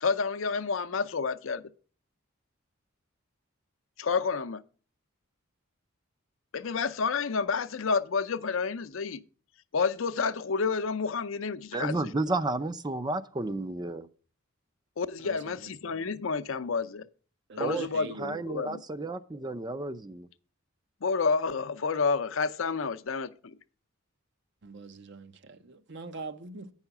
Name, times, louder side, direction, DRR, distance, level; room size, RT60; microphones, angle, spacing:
voice 1, 0.0-1.6 4.0-4.6 6.5-9.2 9.7-11.9 15.0-17.1 17.6-18.8 21.0-23.5, left 5 dB, 70° left, 0.6 m, -29 dB
voice 2, 11.7-14.1 17.6-17.9 18.2-20.3, right 2 dB, 20° right, 0.5 m, -32 dB
voice 3, 15.2-16.0 17.5-18.4 24.6-26.7, right 3 dB, 55° right, 0.7 m, -43 dB
8.9 x 5.6 x 5.9 m
head